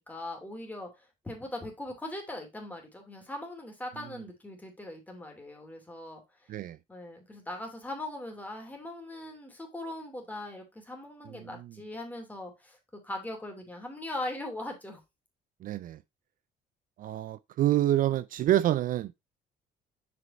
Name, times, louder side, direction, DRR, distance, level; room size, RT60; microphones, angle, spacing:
voice 1, 0.0-6.2 6.9-12.8 13.0-15.0, left 1 dB, 10° left, 2.7 m, -40 dB
voice 2, 11.3-11.7 15.6-16.0 17.0-19.1, right 13 dB, 55° right, 0.4 m, -27 dB
6.4 x 5.3 x 4.1 m
cardioid pair, 110°, 17 cm